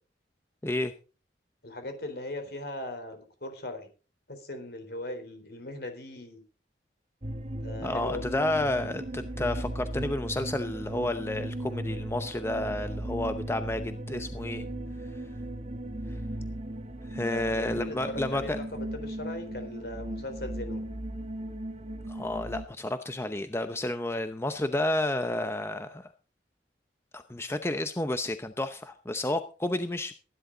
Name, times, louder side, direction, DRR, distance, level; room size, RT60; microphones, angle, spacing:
voice 1, 0.6-0.9 7.8-14.6 17.1-18.6 22.1-26.1 27.1-30.1, left 1 dB, 15° left, 9 dB, 0.7 m, -31 dB
voice 2, 1.6-3.9 4.3-6.4 7.6-8.4 17.2-20.8, left 1 dB, 60° left, 7 dB, 3.9 m, -39 dB
sound 1, 7.2-22.7, right 1 dB, 35° right, 1.4 m, -37 dB
16.5 x 11.0 x 3.9 m, 0.35 s
head